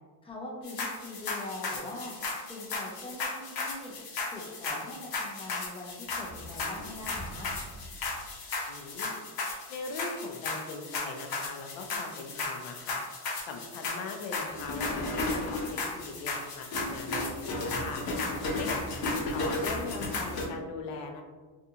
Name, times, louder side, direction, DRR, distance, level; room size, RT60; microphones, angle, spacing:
voice 1, 0.2-2.1 2.5-3.9 4.3-7.5 18.4-19.0, left 2 dB, 15° left, -1 dB, 0.4 m, -42 dB
sound 1, 0.6-20.5, left 3 dB, 55° left, 0.8 m, -35 dB
voice 2, 8.7-9.2 9.7-13.0 13.5-18.0 18.6-21.2, left 4 dB, 80° left, 4 dB, 0.6 m, -40 dB
2.6 x 2.3 x 2.7 m, 1.4 s
cardioid pair, 120°, 45 cm